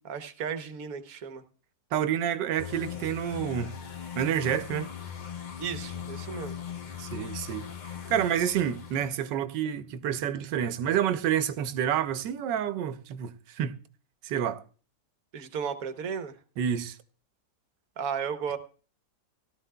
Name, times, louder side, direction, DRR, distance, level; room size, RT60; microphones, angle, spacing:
voice 1, 0.0-1.4 5.6-6.6 15.3-16.4 18.0-18.6, right 7 dB, 60° right, 1.3 m, -34 dB
voice 2, 1.9-3.7 4.2-4.9 7.0-13.7 14.2-14.6 16.6-17.0, right 9 dB, 85° right, 1.4 m, -29 dB
sound 1, 2.6-9.1, left 8 dB, 85° left, 0.4 m, -39 dB
17.0 x 12.5 x 2.2 m
omnidirectional pair, 1.9 m